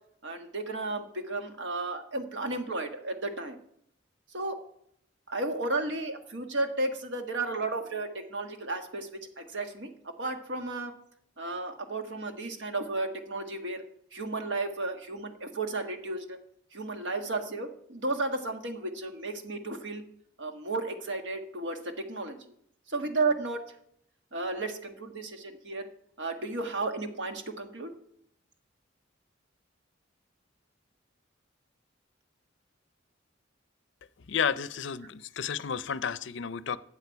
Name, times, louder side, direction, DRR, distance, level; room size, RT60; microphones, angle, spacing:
voice 1, 0.2-3.6 4.3-4.6 5.3-10.9 11.4-13.8 14.1-16.4 16.7-20.0 20.4-22.5 22.9-23.6 24.3-25.9 26.2-27.9, right 2 dB, 65° right, 6 dB, 1.4 m, -33 dB
voice 2, 34.3-36.8, left 7 dB, 65° left, 17 dB, 0.5 m, -31 dB
15.0 x 8.9 x 4.6 m, 0.72 s
head